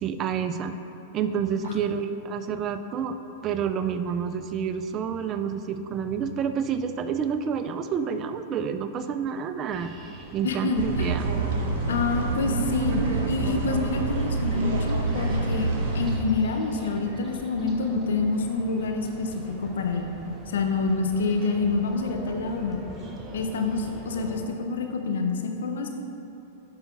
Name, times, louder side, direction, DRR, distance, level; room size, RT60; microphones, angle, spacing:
voice 1, 0.0-0.8 1.1-3.2 3.4-9.9 10.3-11.3, right 7 dB, 35° right, 9 dB, 0.4 m, -29 dB
sound 1, 9.7-24.4, right 1 dB, 20° right, 1.0 m, -42 dB
voice 2, 10.4-11.2 11.9-15.7 15.9-20.1 20.5-22.8 23.3-25.9, left 3 dB, 75° left, 4 dB, 0.6 m, -27 dB
sound 2, 10.8-16.2, right 3 dB, 60° right, 1.0 m, -27 dB
11.5 x 5.0 x 2.4 m, 2.9 s
hypercardioid pair, 105°, 0 cm